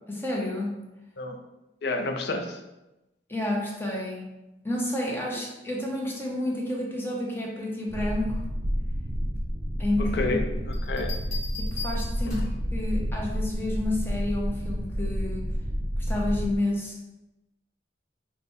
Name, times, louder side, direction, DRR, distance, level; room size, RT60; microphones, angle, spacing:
voice 1, 0.1-0.8 3.3-4.3 4.6-8.4 9.8-10.3 11.6-15.4 16.0-17.0, left 1 dB, 15° left, -2 dB, 0.8 m, -30 dB
voice 2, 1.8-2.6 10.1-11.1 12.3-12.5, left 2 dB, 65° left, 3 dB, 0.5 m, -30 dB
sound 1, 7.9-16.6, equal, 30° right, 0.5 m, -30 dB
sound 2, 10.7-12.7 14.3-14.6, left 4 dB, 40° left, 1.0 m, -40 dB
4.0 x 2.2 x 4.6 m, 0.96 s
head